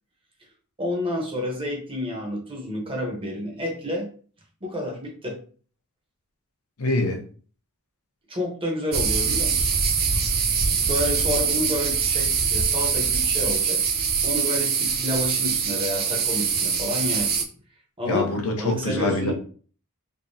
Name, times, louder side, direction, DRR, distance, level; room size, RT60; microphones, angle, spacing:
voice 1, 0.8-4.1 4.6-5.4 8.3-9.7 10.9-13.8 14.2-17.4 18.0-19.3, left 1 dB, 25° right, 0.9 m, -29 dB
voice 2, 6.8-7.2 18.0-19.3, left 2 dB, 70° left, 0.8 m, -24 dB
sound 1, 8.9-17.4, right 6 dB, 45° right, 0.5 m, -23 dB
3.6 x 2.8 x 2.7 m
head